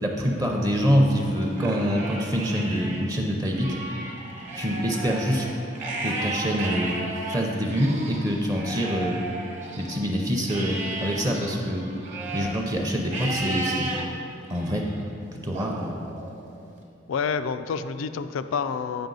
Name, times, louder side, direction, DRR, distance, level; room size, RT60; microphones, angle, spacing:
voice 1, 0.0-3.8 4.5-5.5 6.0-6.9 7.3-9.2 9.8-11.8 12.3-13.9 14.5-14.9 15.3-15.9, equal, 20° right, 0 dB, 0.5 m, -25 dB
Livestock farm animals working animals, 1.4-3.0 3.4-10.0 10.5-12.6 13.1-14.0 14.5-15.0 15.5-16.6, right 2 dB, 40° right, 1.1 m, -34 dB
voice 2, 17.1-19.1, left 6 dB, 85° left, 11 dB, 0.3 m, -28 dB
8.5 x 5.4 x 3.9 m, 2.5 s
head